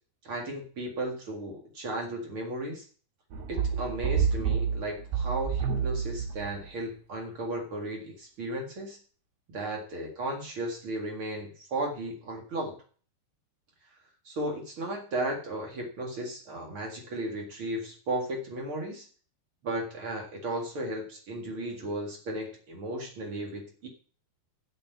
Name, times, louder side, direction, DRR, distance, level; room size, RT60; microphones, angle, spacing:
voice 1, 0.2-2.9 3.5-9.0 9.5-12.8 14.3-19.1 19.6-23.9, right 1 dB, 45° right, 1 dB, 1.9 m, -35 dB
sound 1, 3.3-6.7, right 7 dB, 75° right, 3.9 m, -29 dB
7.2 x 7.2 x 8.2 m, 0.42 s
omnidirectional pair, 4.8 m